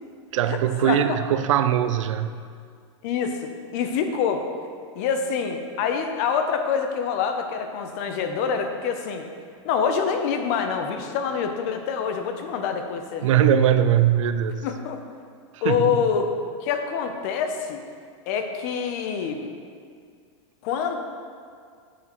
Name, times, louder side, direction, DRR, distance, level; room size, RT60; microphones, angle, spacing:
voice 1, 0.3-2.4 13.2-14.7 15.5-16.0, right 10 dB, 80° right, 11 dB, 0.4 m, -21 dB
voice 2, 3.0-4.4 5.0-9.3 9.6-13.4 14.6-15.0 15.6-16.3 16.6-17.8 18.3-19.5 20.6-21.0, left 6 dB, 30° left, 6 dB, 0.5 m, -26 dB
8.3 x 7.3 x 2.9 m, 2.2 s
supercardioid pair, 175°, 16 cm